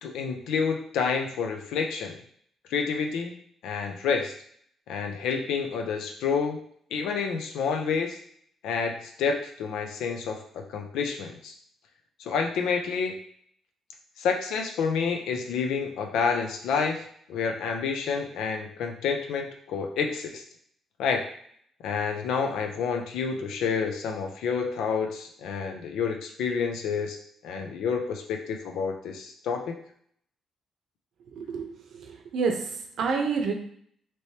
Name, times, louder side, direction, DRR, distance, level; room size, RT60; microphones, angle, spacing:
voice 1, 0.0-2.2 2.7-3.3 3.6-4.3 4.9-6.6 6.9-8.2 8.6-10.4 10.7-11.5 12.2-13.2 14.2-20.4 21.0-21.3 21.8-27.2 27.4-29.7, left 5 dB, 85° left, 3 dB, 0.5 m, -29 dB
voice 2, 31.3-33.5, right 5 dB, 70° right, 3 dB, 0.6 m, -29 dB
3.2 x 3.0 x 2.8 m, 0.62 s
cardioid pair, 90°, 0 cm